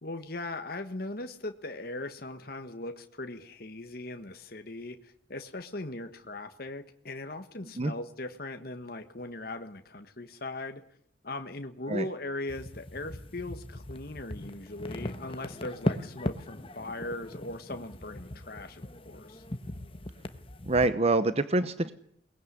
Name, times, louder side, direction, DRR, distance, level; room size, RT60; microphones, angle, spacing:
voice 1, 0.0-10.8 11.2-19.4, left 2 dB, 50° left, 7 dB, 1.5 m, -39 dB
sound 1, 12.5-20.9, left 1 dB, 30° left, 1.2 m, -38 dB
voice 2, 20.6-21.9, right 2 dB, 35° right, 12 dB, 0.9 m, -25 dB
22.5 x 20.0 x 9.8 m, 0.69 s
head